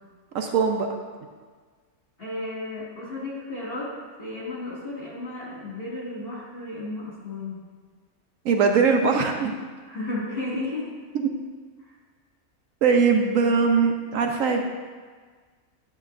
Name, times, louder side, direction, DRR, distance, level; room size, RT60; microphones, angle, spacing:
voice 1, 0.3-0.9 8.4-9.5 11.1-11.3 12.8-14.6, right 5 dB, 70° right, 4 dB, 1.0 m, -21 dB
voice 2, 2.2-3.9 4.2-7.6 9.8-10.9 11.8-12.0, left 2 dB, 40° left, -5 dB, 2.4 m, -33 dB
9.5 x 8.5 x 2.6 m, 1.5 s
omnidirectional pair, 1.5 m